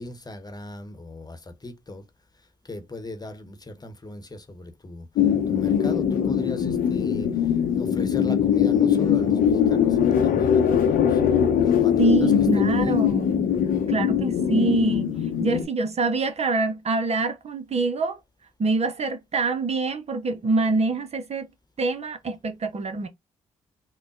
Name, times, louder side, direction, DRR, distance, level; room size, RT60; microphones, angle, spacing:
voice 1, 0.0-2.0 2.6-5.1 5.5-7.5 7.8-11.2 11.6-13.0, left 2 dB, 25° left, 1.0 m, -38 dB
sound 1, 5.2-15.6, left 8 dB, 65° left, 0.7 m, -21 dB
voice 2, 12.0-13.5 13.9-15.1 15.4-18.2 18.6-21.5 21.8-23.1, right 3 dB, 45° right, 0.7 m, -25 dB
3.8 x 2.2 x 3.7 m
hypercardioid pair, 45°, 16 cm